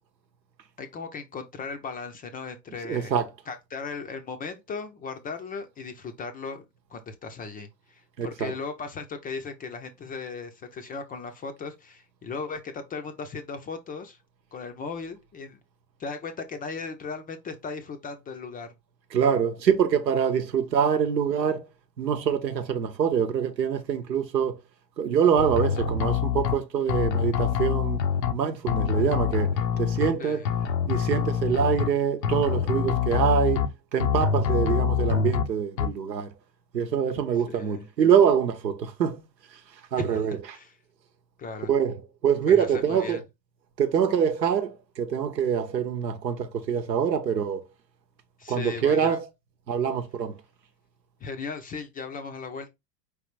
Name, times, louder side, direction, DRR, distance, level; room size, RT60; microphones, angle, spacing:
voice 1, 0.8-3.1 3.5-6.6 6.9-14.2 14.5-15.6 16.0-18.7 30.0-30.5 37.5-37.8 40.0-40.8 41.4-41.7 42.5-43.2 48.4-49.2 51.2-52.7, left 4 dB, 20° left, 0.5 m, -37 dB
voice 2, 2.9-3.3 8.2-8.5 19.1-21.7 22.0-24.6 25.0-28.0 28.3-30.4 30.9-36.3 36.7-39.2 39.9-40.4 41.7-42.0 42.2-43.2 43.8-47.6 48.5-49.3 49.7-50.4, right 7 dB, 85° right, 0.9 m, -25 dB
sound 1, 25.4-26.6 26.9-28.3 28.7-30.1 30.5-31.9 32.2-33.7 34.0-35.4 35.8-35.9, left 8 dB, 75° left, 0.8 m, -25 dB
4.7 x 3.4 x 3.1 m
hypercardioid pair, 90°, 50 cm